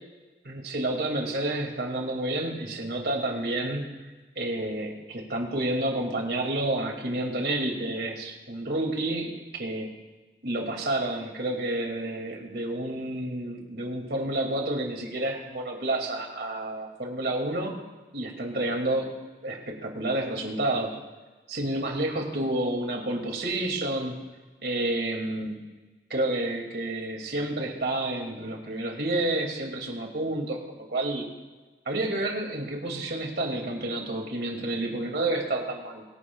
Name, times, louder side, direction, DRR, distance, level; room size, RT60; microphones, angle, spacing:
voice 1, 0.4-3.8 4.4-9.9 10.4-17.7 18.1-19.1 19.4-21.0 21.5-24.1 24.6-25.6 26.1-31.3 31.9-36.0, right 1 dB, 70° right, 1 dB, 2.5 m, -30 dB
24.5 x 11.5 x 2.4 m, 1.3 s
head